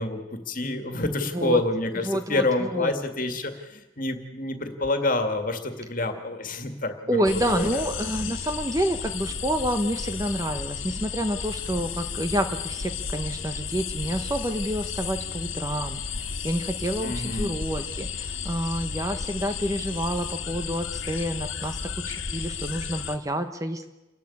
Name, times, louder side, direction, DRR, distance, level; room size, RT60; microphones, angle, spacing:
voice 1, 0.0-7.8 17.0-17.6, left 2 dB, 40° left, 7 dB, 2.1 m, -28 dB
voice 2, 2.1-2.9 7.1-21.8 22.0-23.9, equal, 15° right, 7 dB, 1.0 m, -28 dB
sound 1, 7.2-23.2, left 6 dB, 75° left, 1.8 m, -33 dB
28.5 x 12.0 x 8.6 m, 1.1 s
head